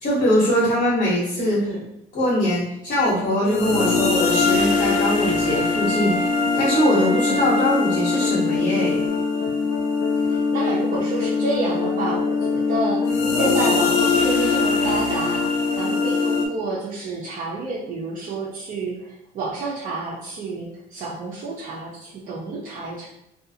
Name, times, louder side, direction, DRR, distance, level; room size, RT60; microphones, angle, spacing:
voice 1, 0.0-1.6 2.1-9.0, left 1 dB, 50° left, -9 dB, 1.1 m, -22 dB
voice 2, 1.4-1.8 6.9-7.5 10.2-23.1, right 3 dB, 55° right, -6 dB, 0.6 m, -29 dB
sound 1, 3.4-16.5, left 4 dB, 75° left, 0.5 m, -22 dB
Wind instrument woodwind instrument, 4.3-8.6 9.1-9.2, left 1 dB, 10° right, 0.4 m, -30 dB
2.4 x 2.4 x 2.7 m, 0.79 s
cardioid pair, 110°, 17 cm